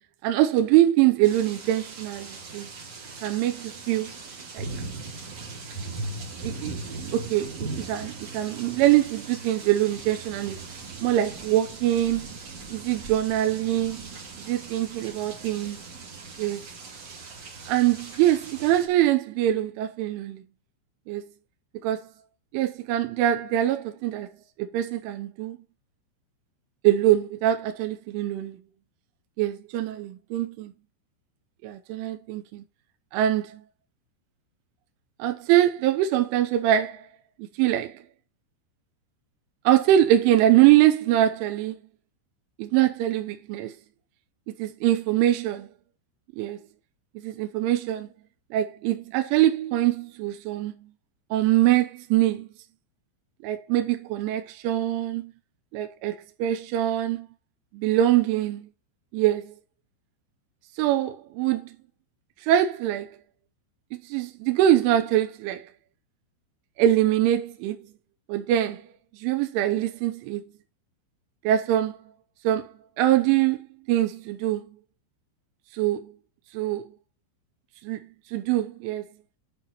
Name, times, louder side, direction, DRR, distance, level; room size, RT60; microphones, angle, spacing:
voice 1, 0.2-2.7 3.2-4.1 4.5-4.7 6.4-6.8 7.1-10.6 11.0-12.4 12.7-14.1 14.4-15.8 16.4-16.6 17.7-20.4 21.1-21.3 21.8-22.0 22.5-24.3 24.6-25.6 26.8-28.6 29.4-30.7 31.6-32.6 33.1-33.6 35.2-37.1 37.4-38.0 39.7-41.8 42.6-43.7 44.5-45.7 46.4-46.6 47.2-48.1 48.5-50.9 51.3-52.5 53.4-55.3 55.7-57.3 57.7-58.7 59.1-59.5 60.8-61.8 62.4-63.1 63.9-65.6 66.8-67.8 68.3-68.8 69.1-70.4 71.4-72.0 72.4-72.7 73.0-74.8 75.7-76.1 76.5-76.8 77.8-78.0 78.3-79.1, right 12 dB, 80° right, 3.1 m, -23 dB
sound 1, 1.2-18.9, right 3 dB, 40° right, 2.9 m, -39 dB
9.5 x 5.7 x 4.2 m
omnidirectional pair, 5.7 m